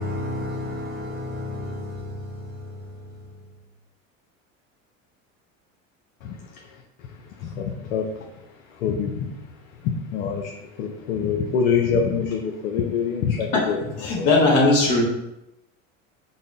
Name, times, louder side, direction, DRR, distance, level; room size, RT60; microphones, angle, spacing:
voice 1, 0.0-2.5, left 1 dB, 25° right, 0.9 m, -31 dB
voice 2, 6.2-14.3, left 6 dB, 75° left, 0.6 m, -27 dB
voice 3, 14.0-15.0, left 2 dB, 60° left, 1.4 m, -18 dB
4.0 x 2.0 x 3.7 m
hypercardioid pair, 85°, 40 cm